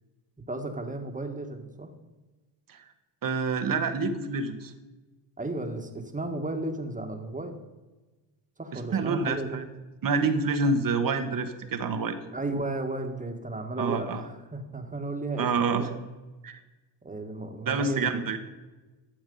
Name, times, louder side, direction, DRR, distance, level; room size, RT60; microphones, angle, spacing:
voice 1, 0.5-1.9 5.4-7.6 8.6-9.7 12.3-16.0 17.0-18.4, right 2 dB, 15° right, 5 dB, 1.6 m, -34 dB
voice 2, 3.2-4.7 8.7-9.6 10.0-12.2 13.8-14.2 15.4-15.9 16.4-16.6 17.7-18.4, right 4 dB, 45° right, 9 dB, 1.4 m, -27 dB
13.5 x 7.1 x 5.4 m, 1.2 s
cardioid pair, 85°, 47 cm